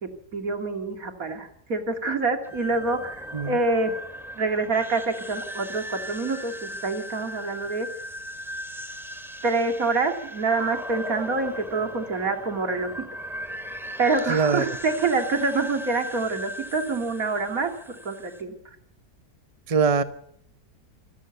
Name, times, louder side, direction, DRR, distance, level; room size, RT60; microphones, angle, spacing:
voice 1, 0.0-3.9 4.3-7.9 9.4-12.9 14.0-18.6, right 3 dB, 60° right, 5 dB, 2.9 m, -26 dB
sound 1, 2.4-18.4, equal, ahead, 2.3 m, -38 dB
voice 2, 14.3-14.8 19.7-20.0, right 5 dB, 30° right, 12 dB, 0.7 m, -22 dB
26.5 x 13.5 x 8.2 m, 0.72 s
omnidirectional pair, 1.7 m